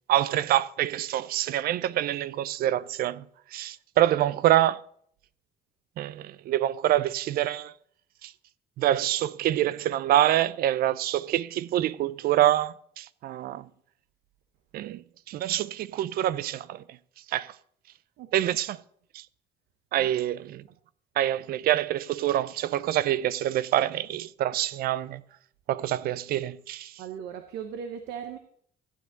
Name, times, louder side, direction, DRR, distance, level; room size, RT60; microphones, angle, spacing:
voice 1, 0.1-3.2 3.5-4.8 6.0-7.7 8.2-8.3 8.8-13.7 14.7-16.8 17.3-17.6 18.3-18.8 19.1-19.3 19.9-20.6 21.2-25.2 25.7-27.0, right 13 dB, 65° right, 0.5 m, -26 dB
voice 2, 18.2-18.5 20.0-20.1 20.7-20.8 27.0-28.4, right 8 dB, 85° right, 0.9 m, -38 dB
14.5 x 9.3 x 4.0 m
cardioid pair, 110°, 17 cm